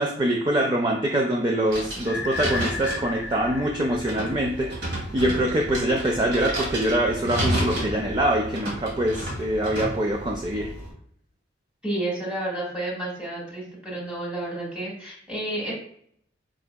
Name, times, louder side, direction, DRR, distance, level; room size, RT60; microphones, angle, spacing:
voice 1, 0.0-4.7 5.1-10.7, right 1 dB, 25° right, 0 dB, 0.4 m, -24 dB
sound 1, 1.7-10.9, right 1 dB, 55° right, 1.4 m, -32 dB
Strange Experimental Sound, 2.0-4.9, left 4 dB, 65° left, 0.5 m, -34 dB
voice 2, 11.8-15.7, right 1 dB, 5° right, -4 dB, 1.3 m, -31 dB
4.4 x 3.8 x 2.2 m, 0.67 s
head